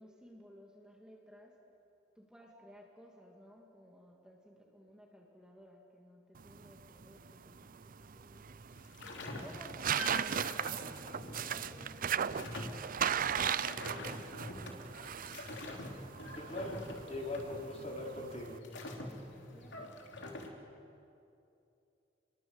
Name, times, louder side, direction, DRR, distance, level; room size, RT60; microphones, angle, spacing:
voice 1, 0.0-1.6 2.1-8.6 9.4-15.4 18.9-19.9, equal, 5° right, -1 dB, 2.7 m, -57 dB
sound 1, 6.4-18.6, right 8 dB, 45° right, 0.6 m, -38 dB
sound 2, 8.8-20.5, left 1 dB, 65° left, 3.6 m, -46 dB
voice 2, 16.3-16.8 17.1-18.6, left 2 dB, 35° left, 0 dB, 4.4 m, -40 dB
29.5 x 22.5 x 8.2 m, 2.7 s
head